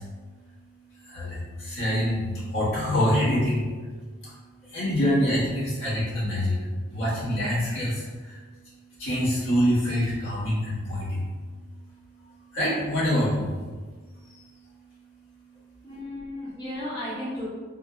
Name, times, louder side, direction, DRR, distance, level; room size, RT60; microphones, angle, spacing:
voice 1, 1.7-3.7 4.7-6.6 6.9-7.9 9.0-11.2 12.5-13.4, equal, 80° left, -9 dB, 1.5 m, -25 dB
voice 2, 15.8-17.4, left 1 dB, 25° left, -10 dB, 0.9 m, -34 dB
3.8 x 2.7 x 2.2 m, 1.4 s
head